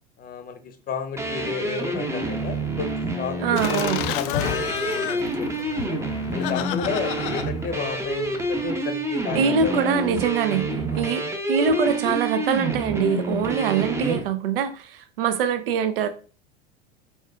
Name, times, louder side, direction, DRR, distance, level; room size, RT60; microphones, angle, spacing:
voice 1, 0.2-6.0 6.3-9.8 10.9-11.1, left 5 dB, 25° left, 0.8 m, -32 dB
sound 1, 1.2-14.2, right 2 dB, 10° right, 0.7 m, -28 dB
voice 2, 3.4-4.0 9.4-10.7 11.0-16.1, right 6 dB, 60° right, 0.7 m, -23 dB
Laughter, 3.6-8.7, left 10 dB, 55° left, 0.5 m, -31 dB
4.5 x 4.3 x 2.4 m
figure-of-eight pair, 80°, 32 cm